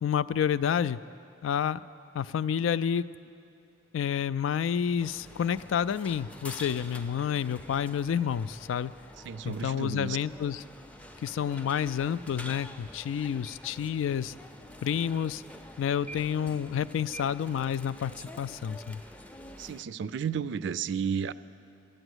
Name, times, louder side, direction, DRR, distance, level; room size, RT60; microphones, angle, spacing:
voice 1, 0.0-1.0 1.4-1.8 2.1-3.0 3.9-8.9 9.4-10.6 11.2-14.3 14.8-15.4 15.8-19.0, left 8 dB, 85° left, 16 dB, 0.3 m, -29 dB
sound 1, 5.0-19.8, equal, 5° left, 0.4 m, -47 dB
voice 2, 9.2-10.2 19.6-21.3, right 7 dB, 65° right, 16 dB, 0.3 m, -32 dB
13.5 x 9.0 x 8.0 m, 2.5 s
head